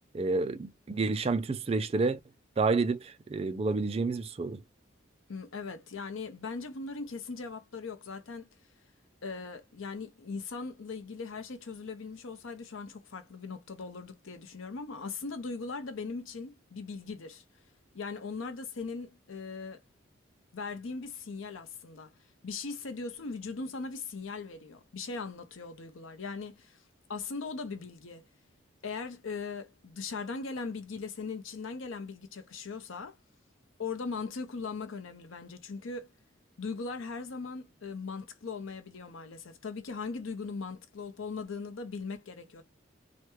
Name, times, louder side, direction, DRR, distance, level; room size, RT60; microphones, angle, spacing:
voice 1, 0.1-2.2 2.6-4.6, right 3 dB, 30° right, 0.3 m, -29 dB
voice 2, 5.3-8.5 9.2-17.4 17.9-19.8 20.5-22.1 22.4-26.8 27.1-28.3 28.8-33.2 33.8-36.1 36.6-42.6, left 4 dB, 80° left, 0.6 m, -39 dB
3.3 x 2.2 x 3.0 m
head